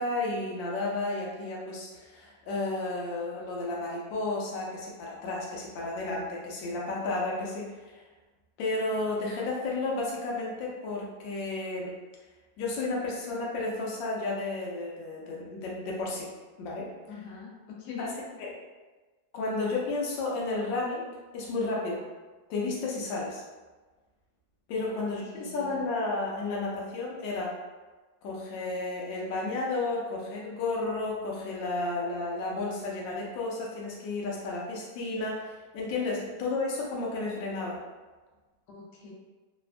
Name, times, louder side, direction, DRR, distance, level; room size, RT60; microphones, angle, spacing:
voice 1, 0.0-8.1 8.6-11.9 12.6-16.3 16.6-16.9 18.0-18.1 18.4-18.5 19.3-21.0 21.3-22.0 22.5-23.4 24.7-27.5 28.2-37.8, left 2 dB, 85° left, -3 dB, 1.3 m, -32 dB
voice 2, 17.1-18.1 24.9-25.1 25.4-25.8 36.2-36.3 38.7-39.1, left 5 dB, 65° left, -4 dB, 1.1 m, -43 dB
3.4 x 2.1 x 2.4 m, 1.3 s
omnidirectional pair, 2.0 m